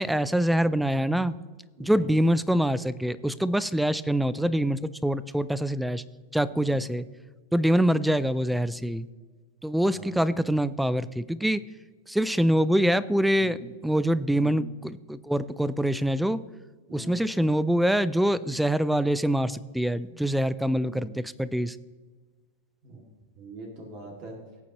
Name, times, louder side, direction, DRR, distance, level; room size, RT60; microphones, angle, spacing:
voice 1, 0.0-1.4 1.8-6.0 6.3-7.1 7.5-9.1 9.6-11.6 12.1-13.6 13.8-16.5 16.9-21.8, equal, ahead, 17 dB, 0.3 m, -25 dB
voice 2, 1.8-2.1 6.5-6.8 9.8-10.2 13.3-13.6 14.2-14.6 16.9-17.2 20.1-20.4 20.8-21.1 22.8-23.0 23.4-24.4, right 2 dB, 40° right, 0 dB, 2.3 m, -44 dB
19.0 x 8.7 x 3.0 m, 1.4 s
supercardioid pair, 155°, 0 cm